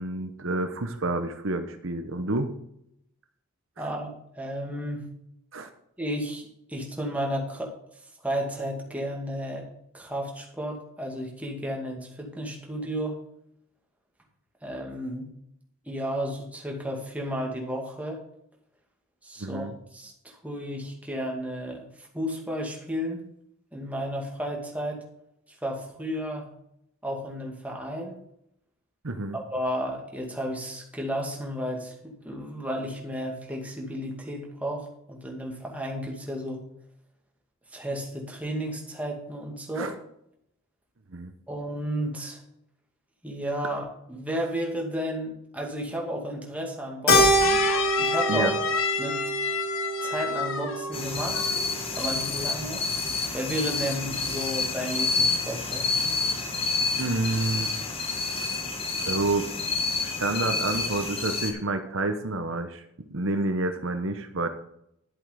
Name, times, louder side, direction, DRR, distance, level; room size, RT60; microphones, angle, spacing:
voice 1, 0.0-2.5 5.5-5.7 19.4-19.7 29.0-29.4 39.8-39.9 41.1-41.3 48.3-48.5 57.0-57.7 58.4-58.5 59.0-59.5 60.0-62.8 63.1-64.5, right 2 dB, 65° right, 8 dB, 1.0 m, -29 dB
voice 2, 3.8-5.1 6.0-7.7 8.2-9.7 9.9-13.2 14.6-15.3 15.9-18.2 19.2-23.2 23.7-25.0 25.6-26.5 27.0-28.2 29.5-36.6 37.7-39.9 41.5-42.4 43.2-47.6 48.0-48.5 49.0-49.2 50.0-51.4 52.0-52.8 53.3-55.9, equal, 5° right, 0 dB, 2.2 m, -33 dB
Keyboard (musical), 47.1-51.7, equal, 90° left, 4.4 m, -25 dB
sound 1, 47.4-51.0 51.3-51.7, left 6 dB, 70° left, 1.2 m, -30 dB
sound 2, 50.9-61.5, left 3 dB, 25° left, 1.7 m, -29 dB
11.5 x 7.9 x 5.1 m, 0.76 s
head